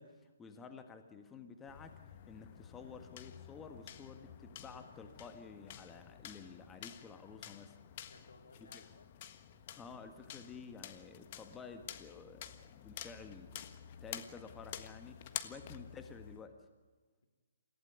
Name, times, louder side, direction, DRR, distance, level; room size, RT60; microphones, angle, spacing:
voice 1, 0.0-2.0 2.3-7.8 8.6-8.8 9.8-13.7 14.0-16.6, left 5 dB, 15° left, 6 dB, 1.7 m, -52 dB
sound 1, 1.7-16.4, left 10 dB, 40° left, 1.5 m, -50 dB
voice 2, 8.0-9.1 15.3-15.9, left 3 dB, 70° left, 5 dB, 3.1 m, -61 dB
28.0 x 16.0 x 9.8 m, 1.4 s
figure-of-eight pair, 130°, 0 cm